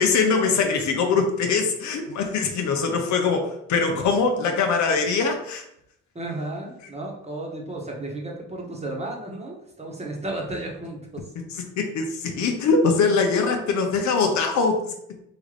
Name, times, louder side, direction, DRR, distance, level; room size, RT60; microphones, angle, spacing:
voice 1, 0.0-5.6 11.8-14.9, left 4 dB, 70° left, 4 dB, 0.7 m, -22 dB
voice 2, 6.1-11.2, right 2 dB, 20° right, -1 dB, 1.0 m, -33 dB
3.7 x 2.5 x 3.2 m, 0.76 s
cardioid pair, 90°, 30 cm